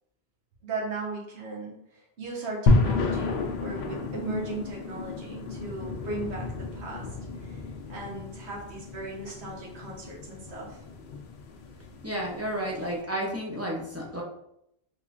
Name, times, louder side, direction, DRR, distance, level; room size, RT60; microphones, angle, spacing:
voice 1, 0.6-7.1 7.4-7.6 7.9-10.8, right 2 dB, 85° right, -3 dB, 1.3 m, -37 dB
sound 1, 2.7-12.9, left 3 dB, 75° left, 0.8 m, -31 dB
voice 2, 12.0-14.2, equal, 20° right, -3 dB, 0.5 m, -31 dB
3.8 x 3.0 x 2.4 m, 0.77 s
omnidirectional pair, 1.1 m